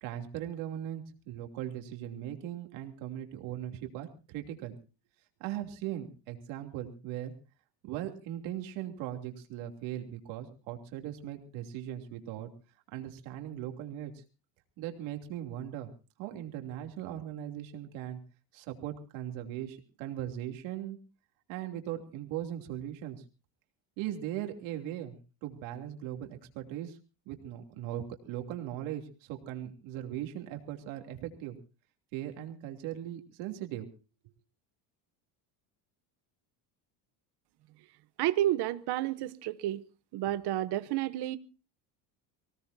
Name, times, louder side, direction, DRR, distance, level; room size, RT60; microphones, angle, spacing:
voice 1, 0.0-4.7 5.4-7.3 7.8-12.5 12.9-14.1 14.8-15.9 16.2-18.2 18.5-21.0 21.5-23.2 24.0-27.0 27.2-31.6 32.1-33.9, right 11 dB, 80° right, 3.1 m, -39 dB
voice 2, 38.2-39.8 40.1-41.4, right 14 dB, 60° right, 1.0 m, -30 dB
24.5 x 17.5 x 2.7 m
cardioid pair, 125°, 46 cm